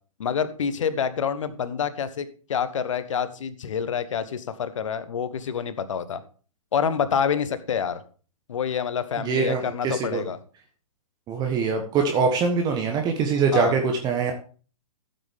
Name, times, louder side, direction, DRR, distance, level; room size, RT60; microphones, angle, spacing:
voice 1, 0.2-6.2 6.7-8.0 8.5-10.4 13.5-13.8, left 7 dB, 60° left, 13 dB, 1.3 m, -27 dB
voice 2, 9.2-10.2 11.3-14.4, right 5 dB, 20° right, 4 dB, 1.3 m, -23 dB
14.0 x 7.8 x 3.5 m, 0.39 s
figure-of-eight pair, 120°, 18 cm